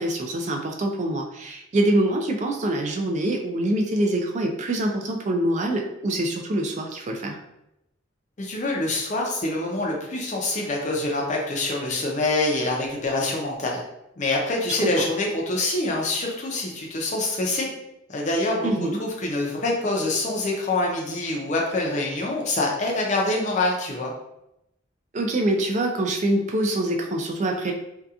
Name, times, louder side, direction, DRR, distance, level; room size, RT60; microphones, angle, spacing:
voice 1, 0.0-7.4 14.8-14.9 18.6-19.0 25.1-27.7, right 1 dB, 35° right, 3 dB, 0.3 m, -25 dB
voice 2, 8.4-13.8 14.2-17.7 18.1-18.7 19.0-24.1, left 2 dB, 40° left, -1 dB, 0.5 m, -25 dB
2.7 x 2.2 x 2.4 m, 0.86 s
head